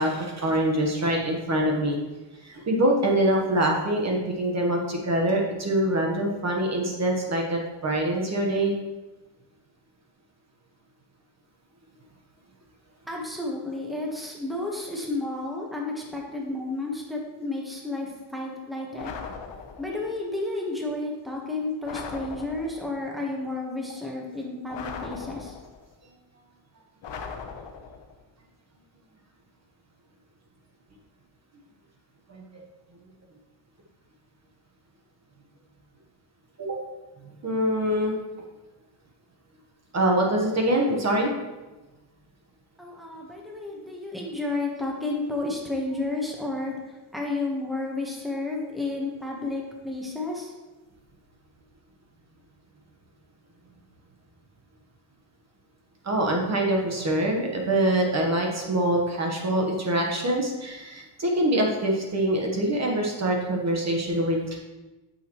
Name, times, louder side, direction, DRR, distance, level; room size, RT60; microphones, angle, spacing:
voice 1, 0.0-2.0 2.4-8.7 32.3-32.6 36.6-36.8 37.4-38.2 39.9-41.3 56.0-64.6, right 1 dB, 40° right, 0 dB, 1.2 m, -24 dB
voice 2, 13.1-19.1 19.8-25.6 42.8-50.5, left 2 dB, ahead, -1 dB, 1.2 m, -31 dB
sound 1, 19.0-20.0 21.8-22.9 24.7-25.9 27.0-28.1, left 5 dB, 80° left, 0.9 m, -39 dB
9.1 x 6.7 x 3.1 m, 1.1 s
wide cardioid pair, 140°, 42 cm